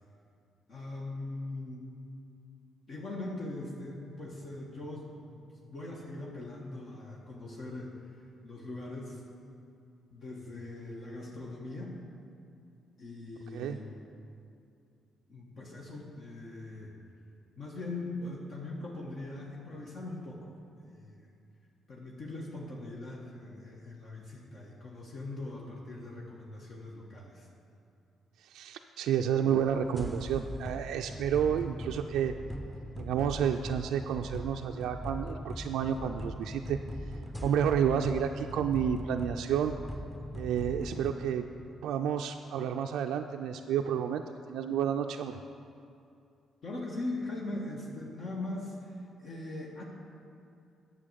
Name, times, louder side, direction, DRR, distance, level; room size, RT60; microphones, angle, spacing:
voice 1, 0.7-1.9 2.9-7.9 8.4-9.2 10.1-12.0 13.0-14.0 15.3-17.0 17.6-21.3 21.9-27.5 46.6-49.8, left 2 dB, 60° left, -3 dB, 1.5 m, -41 dB
voice 2, 28.4-32.3 33.0-36.8 37.4-39.8 40.3-41.5 41.8-45.4, right 8 dB, 85° right, 4 dB, 0.3 m, -30 dB
sound 1, 29.5-41.1, equal, 5° left, 0.7 m, -40 dB
8.8 x 6.8 x 6.8 m, 2.5 s
cardioid pair, 75°, 0 cm